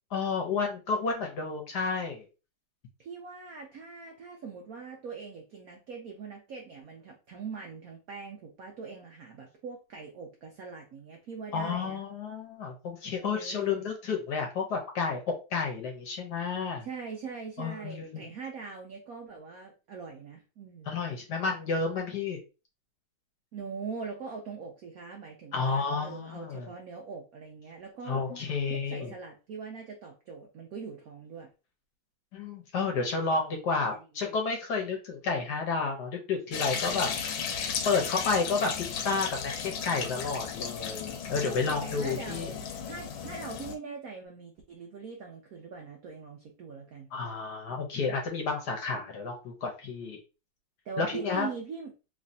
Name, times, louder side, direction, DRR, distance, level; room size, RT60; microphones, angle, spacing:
voice 1, 0.1-2.3 11.5-16.9 17.6-18.3 20.9-22.4 25.5-26.7 28.1-29.1 32.3-37.1 37.8-42.5 47.1-50.2 51.0-51.5, left 4 dB, 65° left, 2 dB, 1.2 m, -31 dB
voice 2, 3.0-12.0 13.2-13.9 16.8-20.9 23.5-28.2 28.7-31.5 33.0-33.2 36.9-37.1 41.4-47.1 50.8-51.9, right 5 dB, 80° right, 2 dB, 0.7 m, -42 dB
sound 1, 36.5-43.8, left 7 dB, 80° left, 1.5 m, -35 dB
3.2 x 3.2 x 2.6 m, 0.31 s
omnidirectional pair, 2.2 m